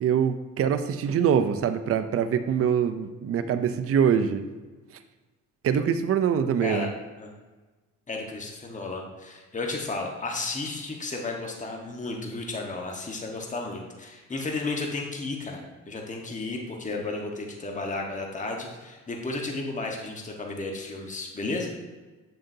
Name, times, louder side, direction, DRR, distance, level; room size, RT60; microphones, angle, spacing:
voice 1, 0.0-4.5 5.6-6.9, right 8 dB, 50° right, 10 dB, 0.6 m, -24 dB
voice 2, 8.1-21.7, left 3 dB, 25° left, 1 dB, 1.3 m, -33 dB
7.8 x 7.6 x 2.7 m, 1.2 s
cardioid pair, 90°, 30 cm